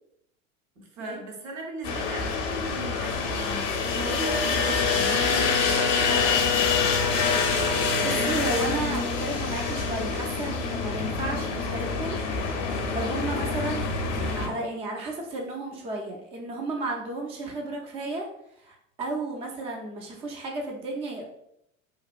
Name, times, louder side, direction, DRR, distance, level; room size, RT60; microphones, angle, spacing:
voice 1, 0.8-6.9, right 3 dB, 75° right, 0 dB, 0.9 m, -38 dB
sound 1, 1.8-14.5, left 4 dB, 45° left, 0.6 m, -26 dB
voice 2, 7.4-12.2 12.9-13.9 14.2-18.3 18.6-21.2, right 2 dB, 15° right, 0 dB, 0.3 m, -33 dB
2.8 x 2.2 x 2.4 m, 0.75 s
hypercardioid pair, 85°, 39 cm